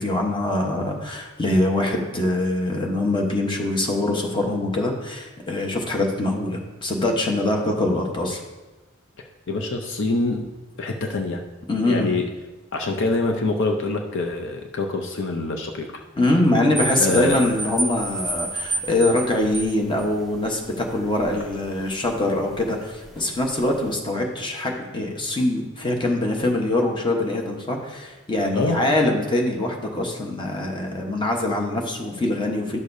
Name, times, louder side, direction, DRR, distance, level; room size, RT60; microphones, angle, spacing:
voice 1, 0.0-8.4 11.7-12.1 16.2-32.8, left 1 dB, 25° left, 1 dB, 1.0 m, -23 dB
voice 2, 9.5-10.5 10.8-11.4 11.8-12.3 12.7-15.9 17.0-17.6 28.5-28.8, left 2 dB, 60° left, 3 dB, 0.6 m, -25 dB
sound 1, 16.7-24.0, right 2 dB, ahead, 1.0 m, -32 dB
10.5 x 6.5 x 2.6 m, 1.1 s
head